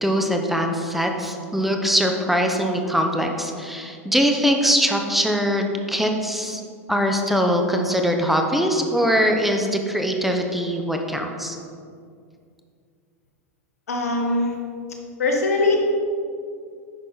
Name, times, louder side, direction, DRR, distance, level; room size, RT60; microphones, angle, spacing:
voice 1, 0.0-6.6 6.9-11.6, equal, ahead, 3 dB, 0.9 m, -22 dB
voice 2, 13.9-14.6 15.2-15.8, left 3 dB, 85° left, 2 dB, 1.5 m, -21 dB
10.0 x 6.0 x 4.1 m, 2.3 s
hypercardioid pair, 105°, 8 cm